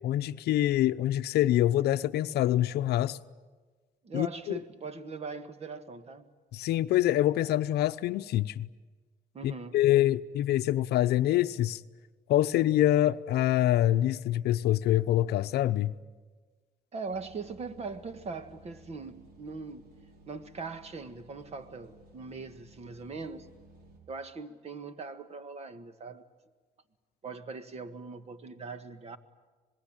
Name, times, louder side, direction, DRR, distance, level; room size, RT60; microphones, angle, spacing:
voice 1, 0.0-3.2 4.1-4.3 6.5-8.7 9.4-11.8 12.3-15.9, left 13 dB, 70° left, 0.7 m, -25 dB
voice 2, 4.0-6.3 9.3-9.8 16.9-19.9 20.3-23.5 24.1-26.3 27.2-29.2, right 4 dB, 40° right, 1.7 m, -41 dB
sound 1, 17.1-24.0, right 2 dB, 65° right, 5.7 m, -56 dB
26.5 x 20.5 x 9.0 m
cardioid pair, 110°, 17 cm